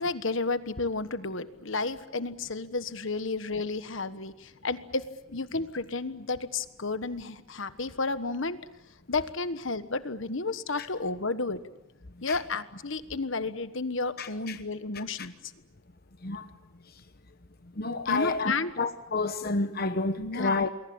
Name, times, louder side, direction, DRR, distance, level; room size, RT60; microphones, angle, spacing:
voice 1, 0.0-5.0 5.3-8.6 9.1-11.6 12.2-15.3 18.1-18.7 20.2-20.6, left 3 dB, 60° left, 1.3 m, -32 dB
voice 2, 14.2-14.6 15.2-15.3 16.2-16.4 17.8-20.7, left 3 dB, 45° left, 1.1 m, -30 dB
28.5 x 22.0 x 8.7 m
head